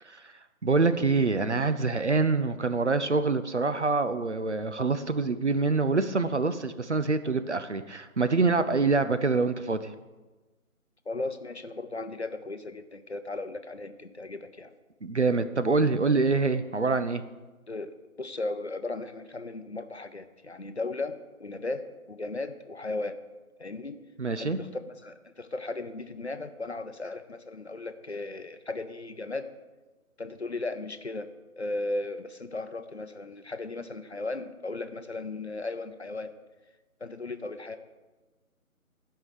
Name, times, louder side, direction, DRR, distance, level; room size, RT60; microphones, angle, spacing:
voice 1, 0.6-9.9 15.0-17.2 24.2-24.6, right 3 dB, 50° right, 11 dB, 0.7 m, -25 dB
voice 2, 11.1-14.7 17.7-23.2 23.6-24.0 24.4-29.5 30.2-31.3 31.6-36.3 37.0-37.8, left 2 dB, 50° left, 9 dB, 0.7 m, -36 dB
13.0 x 5.6 x 6.5 m, 1.2 s
figure-of-eight pair, 155°, 43 cm